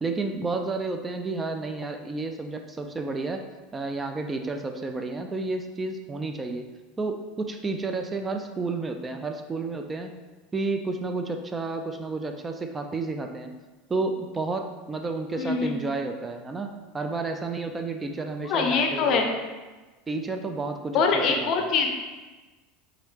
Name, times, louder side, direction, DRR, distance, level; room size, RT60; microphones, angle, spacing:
voice 1, 0.0-3.4 3.7-6.7 7.0-10.1 10.5-13.5 13.9-19.2 20.1-21.7, right 3 dB, 20° right, 5 dB, 0.3 m, -31 dB
voice 2, 15.4-15.8 18.5-19.3 20.9-21.9, left 5 dB, 50° left, 4 dB, 0.5 m, -23 dB
3.7 x 3.1 x 3.0 m, 1.2 s
hypercardioid pair, 80°, 0 cm